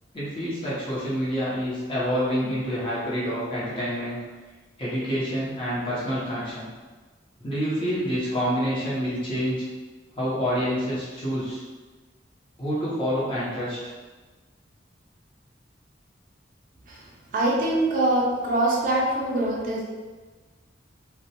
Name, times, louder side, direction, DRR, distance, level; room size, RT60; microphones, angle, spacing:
voice 1, 0.1-4.2 4.8-6.7 7.4-9.7 10.2-11.6 12.6-13.8, equal, 30° left, -8 dB, 0.8 m, -27 dB
voice 2, 17.3-19.8, right 1 dB, 50° right, -3 dB, 0.4 m, -23 dB
2.3 x 2.1 x 2.8 m, 1.3 s
head